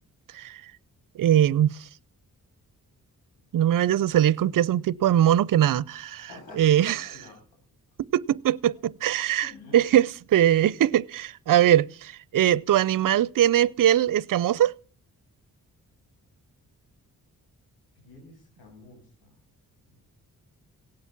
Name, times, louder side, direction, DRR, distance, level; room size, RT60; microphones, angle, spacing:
voice 1, 1.2-1.8 3.5-6.3 6.6-7.0 8.1-14.7, right 11 dB, 60° right, 0.6 m, -21 dB
voice 2, 6.2-7.4 9.4-9.9 18.0-19.3 19.9-20.0, left 3 dB, 85° left, 7.5 m, -48 dB
17.5 x 8.2 x 7.4 m
cardioid pair, 60°, 36 cm